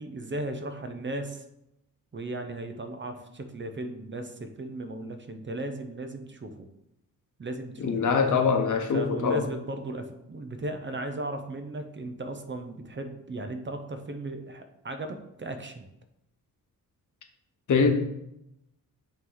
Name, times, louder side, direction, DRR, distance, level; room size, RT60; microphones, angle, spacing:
voice 1, 0.0-1.4 2.1-6.7 7.4-8.1 8.9-15.9, right 2 dB, 35° right, 6 dB, 0.7 m, -36 dB
voice 2, 7.8-9.5 17.7-17.9, left 5 dB, 55° left, 4 dB, 1.0 m, -23 dB
8.6 x 3.1 x 3.9 m, 0.83 s
cardioid pair, 95°, 35 cm